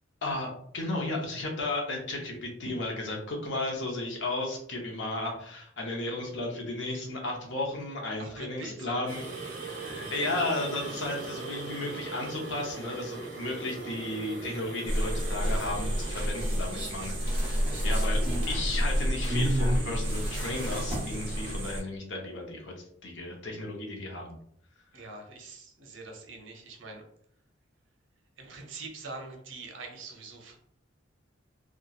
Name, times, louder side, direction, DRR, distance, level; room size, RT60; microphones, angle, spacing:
voice 1, 0.2-9.2 9.5-18.2 18.5-22.7 23.0-24.4, left 2 dB, 70° left, 0 dB, 0.7 m, -34 dB
voice 2, 8.2-9.1 17.0-17.1 24.9-27.1 28.4-30.6, right 3 dB, 90° right, 2 dB, 0.7 m, -44 dB
sound 1, 9.1-21.7, right 3 dB, 70° right, 1.1 m, -41 dB
sound 2, 14.9-21.8, equal, 30° right, 0.9 m, -29 dB
2.9 x 2.2 x 2.3 m, 0.67 s
head